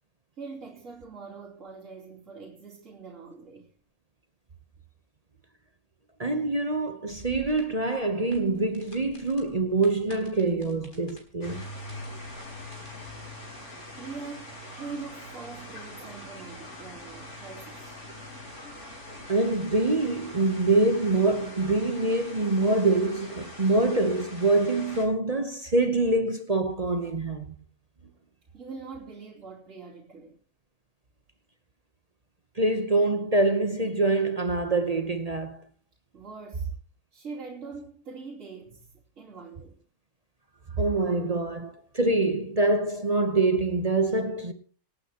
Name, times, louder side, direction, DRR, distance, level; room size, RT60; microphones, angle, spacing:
voice 1, 0.4-3.7 14.0-18.0 28.5-30.4 36.1-36.7 37.1-39.8, right 4 dB, 55° right, 3.4 m, -43 dB
voice 2, 6.2-11.6 19.3-27.5 32.6-35.6 40.8-44.5, right 2 dB, 30° right, 0.9 m, -25 dB
sound 1, 7.1-12.9, left 1 dB, 35° left, 4.2 m, -52 dB
sound 2, 11.4-25.0, left 1 dB, 50° left, 4.9 m, -43 dB
26.5 x 9.0 x 3.0 m
omnidirectional pair, 1.6 m